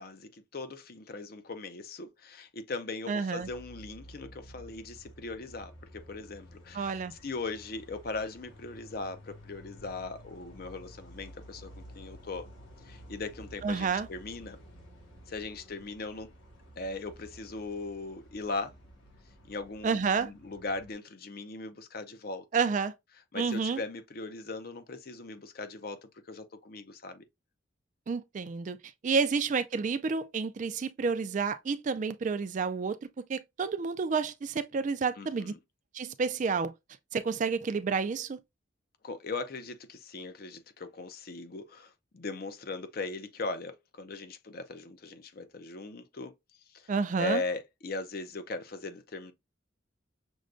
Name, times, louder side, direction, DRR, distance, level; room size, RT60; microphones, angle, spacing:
voice 1, 0.0-12.5 12.8-14.6 15.3-16.3 16.8-18.7 19.5-22.5 23.3-27.2 35.2-35.6 39.0-46.3 46.7-46.9 47.2-49.3, left 3 dB, 50° left, 0.5 m, -39 dB
voice 2, 3.1-3.5 6.7-7.1 13.6-14.1 19.8-20.3 22.5-22.9 23.3-23.8 28.1-35.5 35.9-36.7 37.1-38.4 46.9-47.4, right 5 dB, 40° right, 0.3 m, -30 dB
sound 1, 3.4-20.9, equal, 80° left, 1.9 m, -52 dB
6.2 x 2.2 x 2.5 m
head